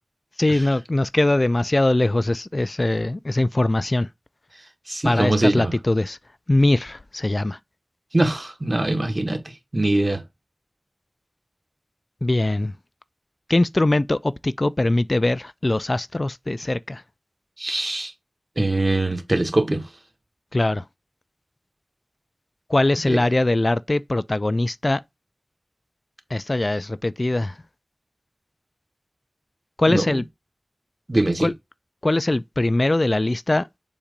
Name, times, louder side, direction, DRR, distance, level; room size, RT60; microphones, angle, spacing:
voice 1, 0.4-4.1 5.0-6.2 6.5-7.6 12.2-12.7 13.5-17.0 20.5-20.8 22.7-25.0 26.3-27.5 29.8-30.2 31.4-31.5 32.0-33.7, left 2 dB, 50° left, 0.4 m, -21 dB
voice 2, 4.5-5.8 8.1-10.2 17.6-18.1 18.6-19.9 23.0-23.2 29.9-30.2 31.1-31.5, right 2 dB, 40° right, 1.4 m, -23 dB
7.1 x 2.5 x 5.2 m
wide cardioid pair, 40°, 0 cm